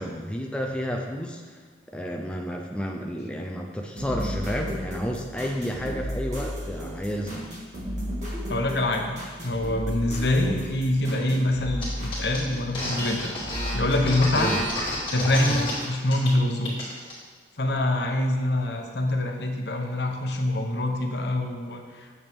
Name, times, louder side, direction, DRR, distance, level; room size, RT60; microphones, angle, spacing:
voice 1, 0.0-1.6 1.9-7.5 10.4-10.7 14.3-14.6, equal, 5° left, 1 dB, 0.5 m, -31 dB
sound 1, 4.0-13.1 13.4-15.0 15.8-15.9, equal, 40° right, 2.3 m, -34 dB
voice 2, 8.5-9.2 9.4-13.3 13.7-14.5 15.1-16.8 17.6-22.1, left 1 dB, 65° left, 3 dB, 0.9 m, -25 dB
sound 2, 11.8-11.9 12.1-15.7 16.1-16.3 16.6-17.1, left 1 dB, 30° left, 2.6 m, -29 dB
8.7 x 6.9 x 3.6 m, 1.5 s
head